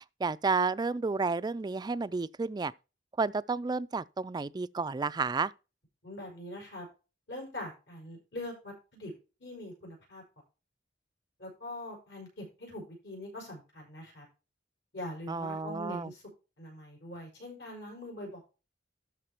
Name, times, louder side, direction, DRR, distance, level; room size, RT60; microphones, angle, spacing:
voice 1, 0.2-2.7 3.2-5.5 15.3-16.1, right 4 dB, 20° right, 0.3 m, -31 dB
voice 2, 6.0-6.9 7.3-9.1 9.4-10.2 11.4-14.3 14.9-16.2 16.6-18.4, left 1 dB, 70° left, 5.4 m, -43 dB
12.5 x 4.8 x 4.4 m
head